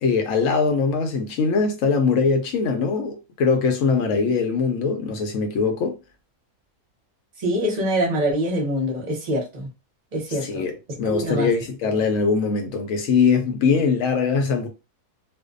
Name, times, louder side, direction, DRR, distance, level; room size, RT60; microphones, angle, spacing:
voice 1, 0.0-6.0 10.4-14.7, left 5 dB, 70° left, 0.8 m, -22 dB
voice 2, 7.4-9.7 10.1-10.6 11.0-11.5, equal, 35° right, 0.7 m, -24 dB
2.5 x 2.2 x 2.4 m
omnidirectional pair, 1.7 m